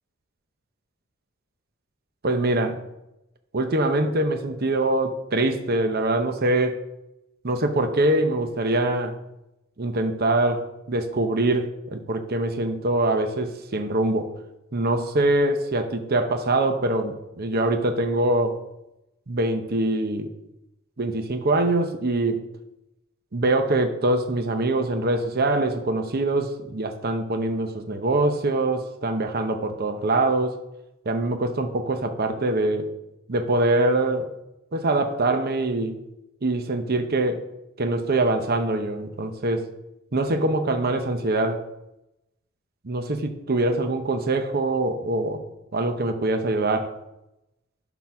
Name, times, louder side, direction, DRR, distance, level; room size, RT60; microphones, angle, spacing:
voice 1, 2.2-2.8 3.5-6.8 7.4-9.2 9.8-14.3 14.7-18.6 19.3-20.3 21.0-22.5 23.3-30.6 31.1-32.9 33.3-34.3 34.7-36.0 36.4-37.5 37.8-39.7 40.1-41.6 42.8-45.4 45.7-47.0, right 2 dB, 50° right, 7 dB, 0.8 m, -24 dB
11.5 x 4.0 x 5.9 m, 0.90 s
head